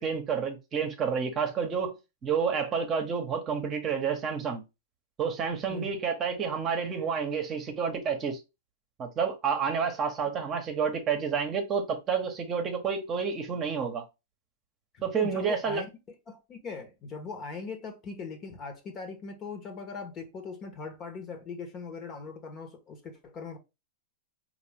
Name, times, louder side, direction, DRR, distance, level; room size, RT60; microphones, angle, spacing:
voice 1, 0.0-1.9 2.2-4.6 5.2-8.4 9.0-14.0 15.0-15.8, right 6 dB, 30° right, 1.0 m, -29 dB
voice 2, 14.9-15.9 16.3-23.6, left 4 dB, 30° left, 1.2 m, -40 dB
4.8 x 2.5 x 3.5 m
hypercardioid pair, 105°, 0 cm